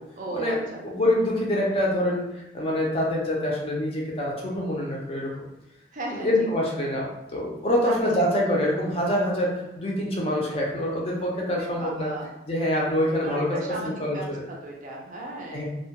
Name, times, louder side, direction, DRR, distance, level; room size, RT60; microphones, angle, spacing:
voice 1, 0.2-0.8 5.9-6.3 7.8-8.0 11.5-12.3 13.1-15.6, right 2 dB, 45° right, -2 dB, 0.4 m, -36 dB
voice 2, 0.8-5.3 6.2-12.1 12.5-13.6 13.8-14.4 15.5-15.6, left 1 dB, 30° left, -3 dB, 0.5 m, -25 dB
2.1 x 2.1 x 2.8 m, 0.90 s
head